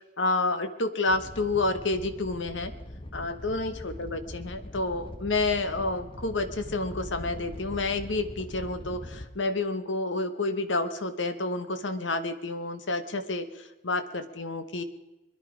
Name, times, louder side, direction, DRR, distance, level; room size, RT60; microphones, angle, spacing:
voice 1, 0.0-2.7 3.1-14.8, left 2 dB, 75° left, 10 dB, 1.2 m, -29 dB
Animal, 1.1-9.2, left 1 dB, 25° left, 1.1 m, -42 dB
22.5 x 11.0 x 5.0 m, 1.1 s
head